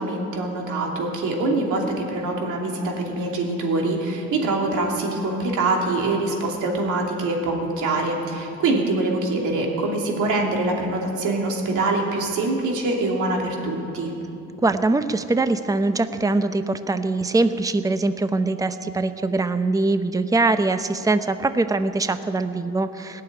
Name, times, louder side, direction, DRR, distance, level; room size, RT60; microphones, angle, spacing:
voice 1, 0.0-14.1, right 2 dB, 80° right, 0 dB, 2.8 m, -24 dB
voice 2, 14.6-23.2, right 3 dB, 10° right, 11 dB, 0.6 m, -22 dB
18.0 x 6.9 x 10.0 m, 2.7 s
cardioid pair, 90°, 30 cm